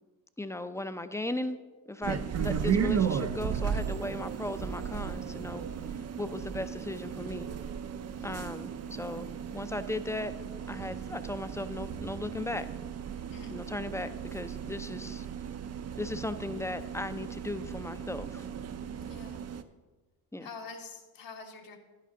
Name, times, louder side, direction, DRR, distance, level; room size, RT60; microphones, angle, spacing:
voice 1, 0.4-1.6 1.9-5.7 6.2-7.5 8.2-9.3 9.5-10.3 10.7-12.7 13.5-15.3 16.0-18.5 20.3-20.5, left 2 dB, 5° left, 11 dB, 0.6 m, -37 dB
sound 1, 2.0-19.6, right 7 dB, 40° right, 0.7 m, -35 dB
voice 2, 8.2-8.5 13.3-13.5 19.0-19.4 20.4-21.8, left 4 dB, 60° left, 3 dB, 1.8 m, -46 dB
11.0 x 9.4 x 3.8 m, 1.2 s
supercardioid pair, 70°, 39 cm